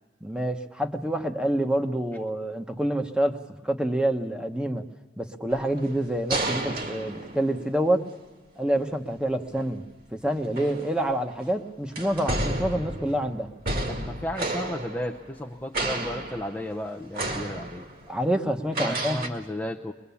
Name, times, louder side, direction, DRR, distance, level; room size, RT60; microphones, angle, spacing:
voice 1, 0.2-4.8 5.2-8.0 8.6-9.8 10.1-13.5 18.1-19.2, right 1 dB, 5° right, 5 dB, 1.1 m, -27 dB
sound 1, 5.5-8.0 9.5-9.7 10.4-11.4 12.0-15.5 15.7-16.8 17.1-18.1 18.7-19.3, right 2 dB, 50° right, 2.1 m, -32 dB
voice 2, 13.9-17.8 18.8-19.9, left 1 dB, 10° left, -1 dB, 0.6 m, -34 dB
22.5 x 22.0 x 7.1 m, 1.3 s
head